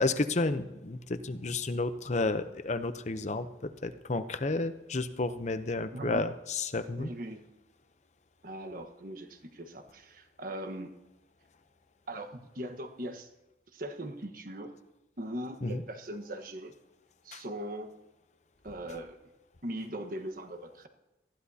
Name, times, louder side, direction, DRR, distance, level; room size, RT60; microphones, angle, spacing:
voice 1, 0.0-7.1 15.6-15.8 17.3-17.4, left 3 dB, 40° left, 11 dB, 0.7 m, -31 dB
voice 2, 5.9-6.3 7.0-7.4 8.4-10.9 12.1-13.3 13.7-14.7 15.2-16.7 17.2-17.9 18.6-19.2 19.6-20.9, right 1 dB, 50° right, 6 dB, 1.3 m, -40 dB
19.5 x 15.0 x 2.8 m, 0.98 s
head